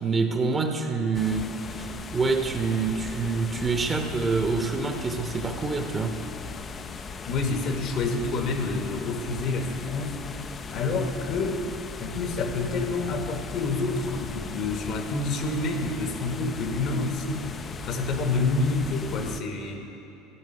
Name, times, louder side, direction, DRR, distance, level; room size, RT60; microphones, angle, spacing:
voice 1, 0.0-1.9 2.1-6.2, right 4 dB, 25° right, 5 dB, 0.9 m, -26 dB
sound 1, 1.1-19.4, left 5 dB, 30° left, 0.5 m, -38 dB
voice 2, 7.2-10.2 10.7-11.6 12.0-17.5 17.8-19.9, left 3 dB, 50° left, 5 dB, 1.2 m, -28 dB
14.5 x 5.6 x 6.6 m, 3.0 s
figure-of-eight pair, 70°, 0 cm